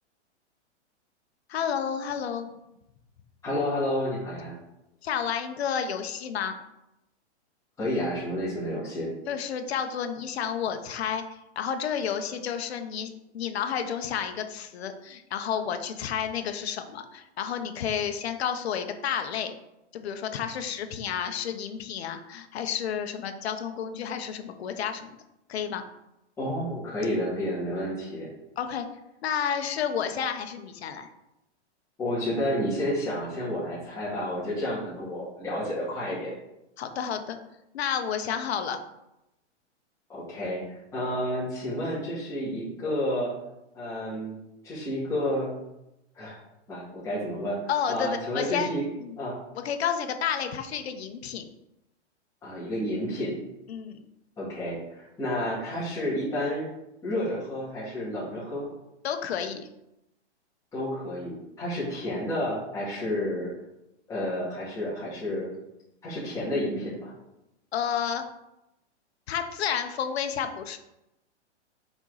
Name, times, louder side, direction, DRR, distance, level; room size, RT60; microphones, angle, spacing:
voice 1, 1.5-2.5 5.0-6.6 9.3-11.2 11.6-19.5 19.9-25.1 25.5-25.8 28.6-28.9 29.2-31.1 36.8-37.4 37.7-38.8 47.7-48.7 49.0-49.2 49.6-51.4 53.7-54.0 59.0-59.7 67.7-68.3 69.3-70.8, left 8 dB, 60° left, 7 dB, 0.9 m, -31 dB
voice 2, 3.4-4.6 7.8-9.1 26.4-28.3 32.0-36.3 40.1-43.3 43.7-44.4 44.6-45.5 46.1-46.4 46.7-47.6 47.9-48.8 49.2-49.3 52.4-53.4 54.4-56.7 57.0-58.7 60.7-63.5 64.1-65.5 66.0-67.1, left 1 dB, 10° left, -9 dB, 2.0 m, -30 dB
5.8 x 4.2 x 3.9 m, 0.89 s
hypercardioid pair, 165°, 35 cm